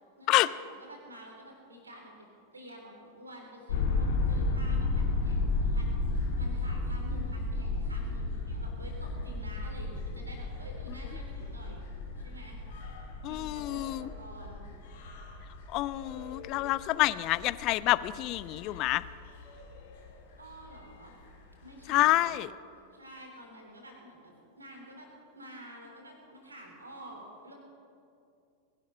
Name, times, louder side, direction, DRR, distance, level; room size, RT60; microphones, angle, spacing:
voice 1, 0.2-2.1 2.5-11.9 12.2-12.6 13.3-14.6 20.4-21.1 21.6-22.3 22.7-25.1 25.3-27.5, equal, 80° right, 1 dB, 3.5 m, -49 dB
sound 1, 3.7-20.1 20.5-20.6 20.8-20.9 22.2-22.3, left 3 dB, 55° left, 2.3 m, -33 dB
voice 2, 13.2-14.1 15.7-19.0 21.9-22.5, left 17 dB, 40° left, 18 dB, 0.4 m, -27 dB
21.0 x 11.5 x 5.5 m, 2.5 s
figure-of-eight pair, 90°, 0 cm